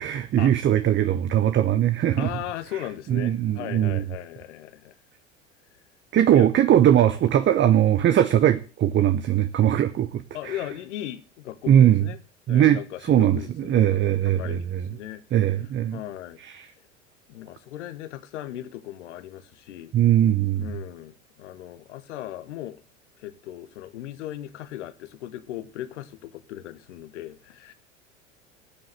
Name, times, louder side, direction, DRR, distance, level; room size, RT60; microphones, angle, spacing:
voice 1, 0.0-2.3 3.1-4.0 6.1-10.5 11.7-12.0 12.5-12.8 13.1-14.8 15.3-16.0 19.9-20.7, right 11 dB, 30° right, 0.9 m, -20 dB
voice 2, 2.2-4.9 6.3-6.5 10.3-12.2 12.5-15.2 15.9-16.4 17.3-19.9 20.6-22.8 23.2-27.7, left 13 dB, 70° left, 1.5 m, -37 dB
14.0 x 7.7 x 7.4 m
figure-of-eight pair, 75°, 38 cm